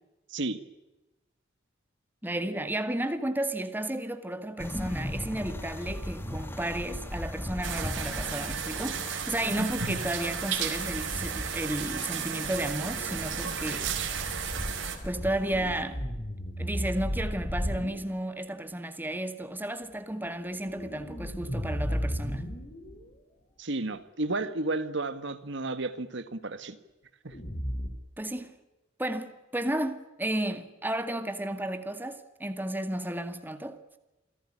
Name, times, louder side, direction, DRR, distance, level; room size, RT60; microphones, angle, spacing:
voice 1, 2.2-13.9 15.0-16.0 16.6-22.5 28.2-28.6 29.0-33.8, right 1 dB, 10° right, 2.1 m, -33 dB
sound 1, 4.6-15.8, equal, 10° left, 2.0 m, -38 dB
sound 2, 7.6-15.0, right 7 dB, 85° right, 4.6 m, -34 dB
sound 3, 13.0-13.3 15.4-18.0 20.5-23.1 27.3-27.9, equal, 40° left, 4.4 m, -34 dB
voice 2, 23.6-26.8 27.2-27.4, right 2 dB, 65° right, 1.6 m, -32 dB
28.0 x 17.0 x 9.9 m
head